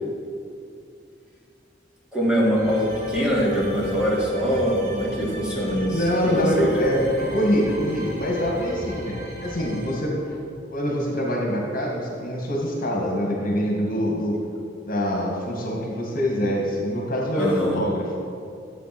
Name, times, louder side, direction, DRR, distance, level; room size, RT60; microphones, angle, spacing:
voice 1, 2.1-6.7 17.4-17.7, equal, 5° right, -6 dB, 2.8 m, -23 dB
sound 1, 2.6-9.9, equal, 40° right, 2.6 m, -37 dB
voice 2, 5.9-10.4 10.7-14.4 14.8-18.1, equal, 50° left, -1 dB, 2.0 m, -24 dB
13.0 x 8.4 x 6.2 m, 2.4 s
head